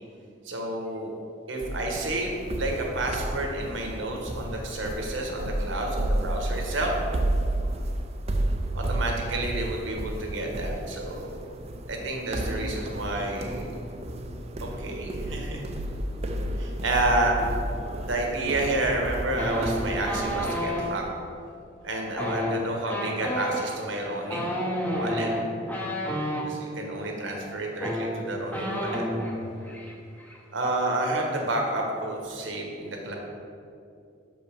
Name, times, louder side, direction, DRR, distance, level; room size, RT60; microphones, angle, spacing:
voice 1, 0.4-1.1 1.5-6.9 8.7-11.4 11.9-13.7 14.8-15.7 16.6-17.4 18.0-21.0 21.8-24.6 24.9-25.3 26.5-29.0 30.5-33.1, right 2 dB, 80° right, 0 dB, 1.3 m, -30 dB
sound 1, 1.6-21.1, right 1 dB, 35° right, 0.5 m, -32 dB
sound 2, 19.4-20.8 22.1-26.5 27.4-27.5 27.7-29.4 29.7-29.9 30.2-30.7, equal, 10° left, 0.8 m, -30 dB
6.3 x 5.4 x 5.2 m, 2.5 s
head